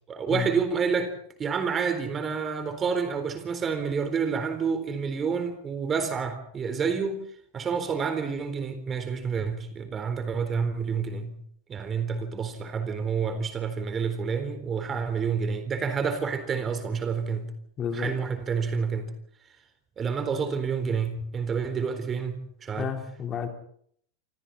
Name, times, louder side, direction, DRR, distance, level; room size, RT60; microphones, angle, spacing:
voice 1, 0.1-1.1 1.4-7.2 7.5-11.3 11.7-17.5 17.9-19.1 20.0-23.0, right 6 dB, 25° right, 9 dB, 4.1 m, -29 dB
voice 2, 17.8-18.1 22.8-23.5, left 8 dB, 30° left, 4 dB, 4.3 m, -31 dB
27.0 x 27.0 x 4.3 m, 0.64 s
figure-of-eight pair, 95°, 0 cm